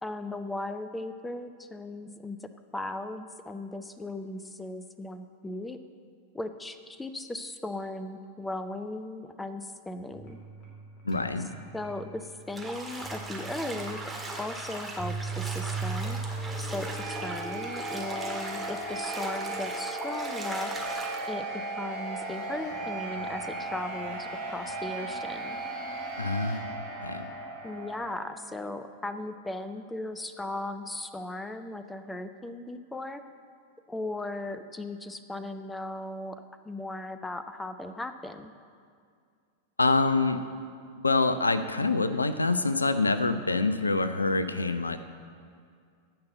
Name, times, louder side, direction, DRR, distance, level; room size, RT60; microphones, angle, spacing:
voice 1, 0.0-5.8 6.3-10.4 11.7-14.0 14.4-16.2 16.6-20.7 21.3-21.4 21.8-25.6 27.6-33.2 33.9-36.4 36.7-38.5, left 2 dB, 10° left, 10 dB, 0.6 m, -37 dB
sound 1, 10.1-28.2, right 3 dB, 25° left, 3.4 m, -37 dB
voice 2, 11.0-11.5 26.2-26.7 27.0-27.3 39.8-40.4 40.9-45.0, left 3 dB, 80° left, 12 dB, 0.5 m, -26 dB
Bathtub (filling or washing), 12.5-21.3, right 2 dB, 5° right, 1.8 m, -40 dB
15.5 x 5.6 x 7.8 m, 2.2 s
figure-of-eight pair, 90°, 0 cm